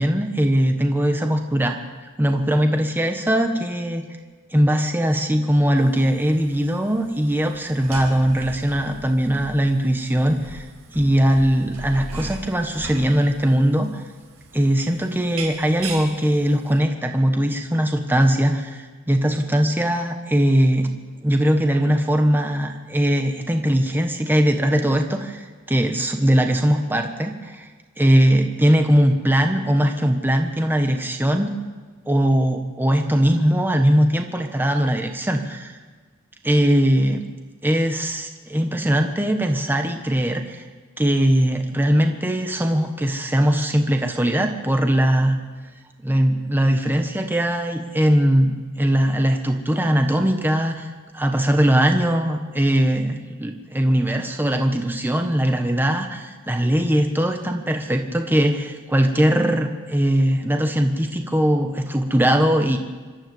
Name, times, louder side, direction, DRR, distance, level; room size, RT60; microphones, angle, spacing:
voice 1, 0.0-1.7 2.2-4.0 4.5-14.0 14.5-20.9 21.2-27.7 28.0-31.5 32.1-35.7 36.4-37.2 37.6-40.6 41.0-45.4 46.0-50.9 51.1-62.8, equal, 10° right, 4 dB, 1.3 m, -20 dB
sound 1, 5.8-16.8, right 2 dB, 90° right, 5.5 m, -39 dB
26.0 x 12.5 x 7.9 m, 1.4 s
head